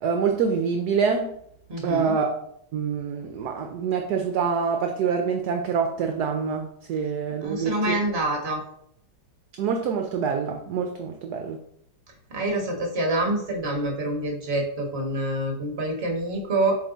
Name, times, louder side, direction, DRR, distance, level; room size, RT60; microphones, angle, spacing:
voice 1, 0.0-1.3 1.8-2.4 2.7-7.9 9.6-11.6, right 6 dB, 70° right, 4 dB, 1.1 m, -26 dB
voice 2, 1.7-2.2 7.4-8.6 12.3-16.8, right 1 dB, 35° right, 1 dB, 1.5 m, -26 dB
7.7 x 3.3 x 4.0 m, 0.71 s
omnidirectional pair, 2.0 m